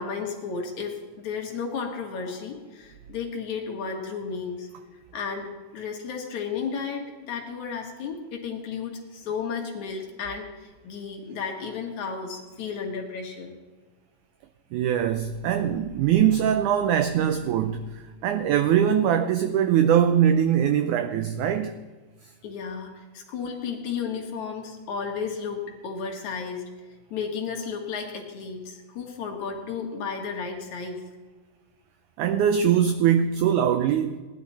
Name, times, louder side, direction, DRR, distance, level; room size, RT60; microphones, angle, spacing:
voice 1, 0.0-4.7 5.1-13.5 22.4-31.0, left 5 dB, 60° left, 2.6 m, -33 dB
voice 2, 14.7-17.9 18.2-21.7 32.2-34.2, right 9 dB, 90° right, 1.7 m, -22 dB
18.5 x 11.0 x 4.2 m
omnidirectional pair, 4.2 m